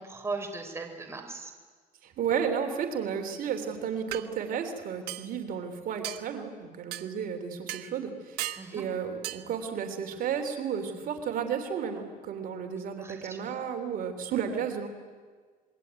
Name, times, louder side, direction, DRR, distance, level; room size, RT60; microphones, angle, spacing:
voice 1, 0.0-1.5 8.6-8.8 13.0-13.6, right 3 dB, 15° right, 4 dB, 3.7 m, -38 dB
voice 2, 2.0-8.5 8.7-14.9, right 7 dB, 60° right, 5 dB, 3.1 m, -33 dB
sound 1, 3.5-3.6 4.1-4.3 5.1-5.3 6.0-6.2 6.9-7.1 7.7-7.9 8.4-8.7 9.2-9.4, right 15 dB, 90° right, 1.2 m, -35 dB
26.5 x 22.0 x 9.5 m, 1.5 s
cardioid pair, 115°, 16 cm